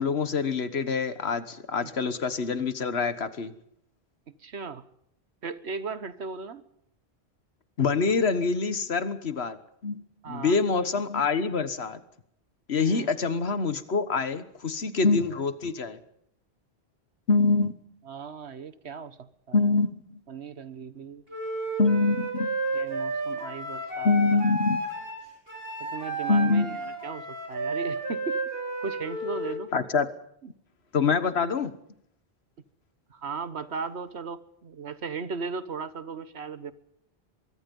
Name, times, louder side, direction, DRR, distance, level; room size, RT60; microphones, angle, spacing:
voice 1, 0.0-3.5 7.8-9.6 9.8-10.0 10.3-12.0 12.7-16.0 17.3-17.8 19.5-19.9 21.8-22.5 24.0-24.8 26.3-26.8 29.7-30.1 30.9-31.7, left 4 dB, 75° left, 13 dB, 1.6 m, -25 dB
voice 2, 4.3-4.9 5.4-6.6 10.2-10.6 12.8-13.1 18.1-19.7 20.3-21.2 22.7-24.1 25.8-28.4 28.8-29.7 30.4-30.5 33.1-36.7, right 5 dB, 80° right, 13 dB, 1.6 m, -37 dB
Wind instrument woodwind instrument, 21.3-29.6, right 2 dB, 65° right, 5.7 m, -32 dB
23.5 x 22.5 x 5.4 m, 0.72 s
omnidirectional pair, 1.1 m